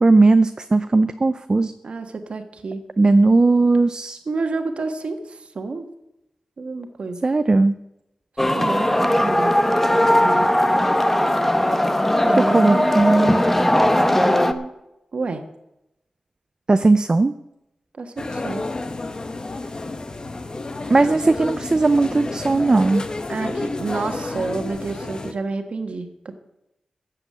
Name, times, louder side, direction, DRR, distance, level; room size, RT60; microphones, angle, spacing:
voice 1, 0.0-1.7 3.0-4.2 7.2-7.8 12.5-13.4 16.7-17.3 20.9-23.0, right 3 dB, 35° right, 10 dB, 0.5 m, -17 dB
voice 2, 1.8-2.8 4.3-5.9 6.6-7.2 8.5-9.6 9.9-10.5 12.2-13.0 14.1-14.7 15.1-15.4 18.0-18.7 23.3-26.4, right 3 dB, 65° right, 6 dB, 1.5 m, -29 dB
sound 1, 8.4-14.5, left 1 dB, 10° left, 1.0 m, -18 dB
sound 2, 18.2-25.3, left 2 dB, 40° left, 1.1 m, -30 dB
14.0 x 7.7 x 7.7 m, 0.88 s
wide cardioid pair, 85°, 2 cm